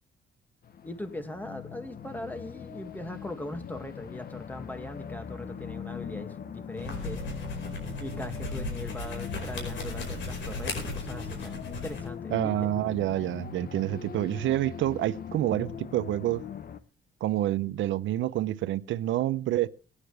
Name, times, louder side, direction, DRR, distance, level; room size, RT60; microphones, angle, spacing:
sound 1, 0.6-16.8, left 7 dB, 50° left, 1.0 m, -41 dB
voice 1, 0.8-7.2 8.0-12.7, left 1 dB, 10° left, 2.0 m, -40 dB
sound 2, 6.7-12.1, left 2 dB, 70° left, 4.9 m, -36 dB
voice 2, 12.3-16.4 17.2-19.7, right 14 dB, 75° right, 0.7 m, -28 dB
18.5 x 9.9 x 3.3 m
cardioid pair, 90°, 20 cm